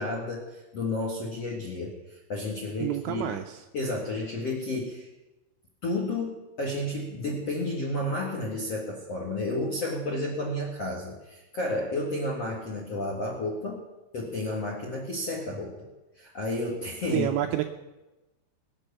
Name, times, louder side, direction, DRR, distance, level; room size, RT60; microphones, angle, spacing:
voice 1, 0.0-3.4 3.7-5.1 5.8-13.8 14.1-15.9 16.1-17.3, left 2 dB, 55° left, -2 dB, 1.7 m, -31 dB
voice 2, 2.8-3.6 17.1-17.6, right 13 dB, 80° right, 5 dB, 2.7 m, -28 dB
21.5 x 8.1 x 6.9 m, 1.1 s
omnidirectional pair, 5.9 m